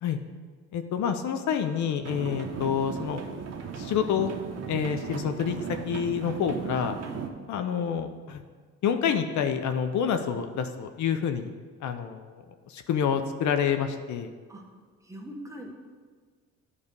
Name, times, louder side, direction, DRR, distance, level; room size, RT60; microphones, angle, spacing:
voice 1, 0.7-3.2 3.8-4.3 4.7-5.6 5.8-7.0 7.5-8.4 8.8-11.5 11.8-14.3, left 8 dB, 70° left, 8 dB, 0.6 m, -28 dB
sound 1, 2.1-7.3, right 6 dB, 60° right, 0.9 m, -36 dB
voice 2, 15.1-15.8, right 1 dB, 10° right, 0 dB, 1.2 m, -41 dB
9.6 x 3.3 x 5.3 m, 1.5 s
cardioid pair, 90°, 30 cm